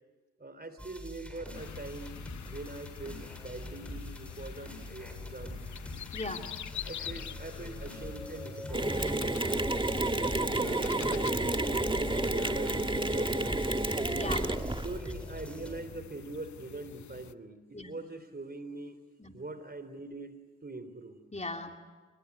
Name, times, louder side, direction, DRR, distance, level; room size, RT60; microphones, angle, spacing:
voice 1, 0.4-5.6 6.8-9.3 10.2-13.7 14.8-19.0 19.3-21.2, right 2 dB, 30° right, 12 dB, 3.6 m, -43 dB
sound 1, 0.8-15.8, left 1 dB, 5° left, 8.0 m, -43 dB
sound 2, 1.5-17.3, left 10 dB, 75° left, 0.9 m, -46 dB
voice 2, 6.1-6.5 14.2-14.8 17.7-17.9 19.2-19.3 21.3-21.8, left 2 dB, 25° left, 4 dB, 3.1 m, -38 dB
Mechanisms, 8.7-15.0, right 2 dB, 15° right, 1.8 m, -30 dB
28.0 x 22.0 x 9.9 m, 1.4 s
supercardioid pair, 45°, 30 cm